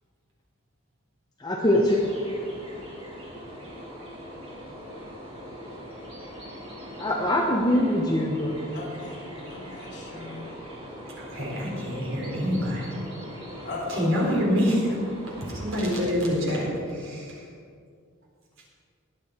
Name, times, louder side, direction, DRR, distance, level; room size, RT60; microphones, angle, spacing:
voice 1, 1.4-2.1 7.0-8.6, left 1 dB, 20° left, 0 dB, 0.9 m, -23 dB
sound 1, 1.6-16.0, equal, 25° right, 3.2 m, -41 dB
voice 2, 8.7-10.5 13.6-14.1, left 2 dB, 50° left, -4 dB, 3.5 m, -38 dB
voice 3, 11.2-13.0 13.9-15.0 15.5-17.5, equal, 65° right, -3 dB, 4.1 m, -26 dB
21.0 x 8.5 x 4.3 m, 2.3 s
head